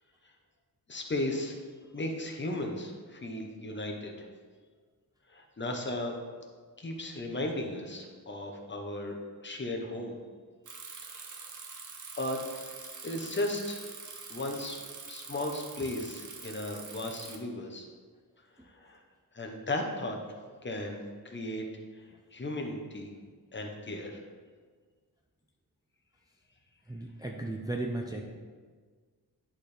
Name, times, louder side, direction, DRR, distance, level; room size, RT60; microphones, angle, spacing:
voice 1, 0.9-1.5 1.9-4.3 5.3-6.1 6.8-9.2 9.4-10.2 11.0-11.1 12.2-12.7 13.0-13.8 14.3-14.8 15.1-17.8 18.7-19.0 19.3-20.3 20.6-21.7 21.9-22.0 22.3-23.1 23.5-24.2, left 1 dB, 30° left, 1 dB, 0.8 m, -35 dB
Bicycle, 10.7-17.4, right 5 dB, 50° right, 0.8 m, -45 dB
voice 2, 26.9-28.2, right 2 dB, 10° right, -1 dB, 0.4 m, -35 dB
10.5 x 4.3 x 3.3 m, 1.6 s
wide cardioid pair, 170°, 37 cm